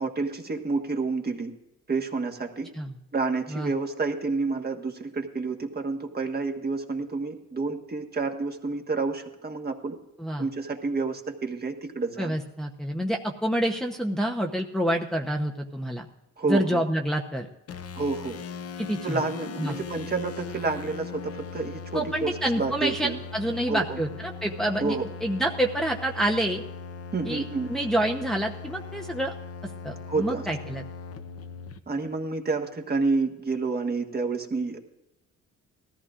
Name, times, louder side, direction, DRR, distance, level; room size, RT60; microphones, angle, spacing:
voice 1, 0.0-1.5 1.9-2.7 3.1-10.0 10.4-12.3 16.4-16.8 17.9-18.4 19.0-23.2 23.7-24.0 24.8-25.1 27.1-27.7 30.1-30.4 31.9-34.8, right 3 dB, 30° right, 3 dB, 1.5 m, -29 dB
voice 2, 12.2-16.1 16.5-17.5 18.8-19.2 19.6-19.8 21.9-26.6 27.2-27.4 27.7-29.3 29.6-30.8, right 1 dB, ahead, 0 dB, 0.9 m, -28 dB
long distort, 17.7-31.8, left 5 dB, 50° left, 0.8 m, -39 dB
18.5 x 14.0 x 2.5 m, 0.93 s
cardioid pair, 90°, 30 cm